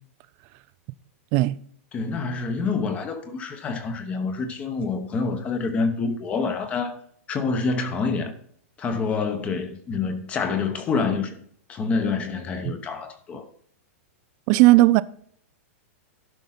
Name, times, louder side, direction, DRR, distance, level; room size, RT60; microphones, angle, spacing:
voice 1, 1.9-7.0 7.3-8.3 8.8-11.4 11.7-13.5, left 4 dB, 15° left, 1.0 m, -27 dB
voice 2, 14.5-15.0, right 18 dB, 30° right, 0.4 m, -15 dB
11.5 x 5.3 x 5.7 m
supercardioid pair, 170°, 8 cm